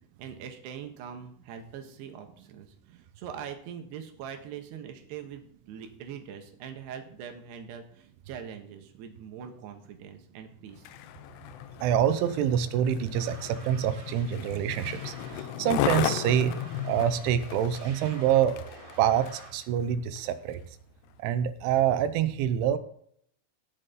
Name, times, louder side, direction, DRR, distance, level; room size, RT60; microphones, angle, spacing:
voice 1, 0.2-10.9, right 8 dB, 70° right, 5 dB, 3.2 m, -42 dB
Skateboard, 10.7-19.6 20.2-20.3, left 11 dB, 80° left, 2.4 m, -35 dB
voice 2, 11.8-16.5 16.8-18.5 19.0-20.6 21.2-22.8, right 9 dB, 85° right, 11 dB, 3.2 m, -26 dB
sound 1, 13.1-19.5, right 2 dB, 15° right, 1.3 m, -49 dB
18.0 x 6.4 x 3.8 m, 0.66 s
omnidirectional pair, 5.4 m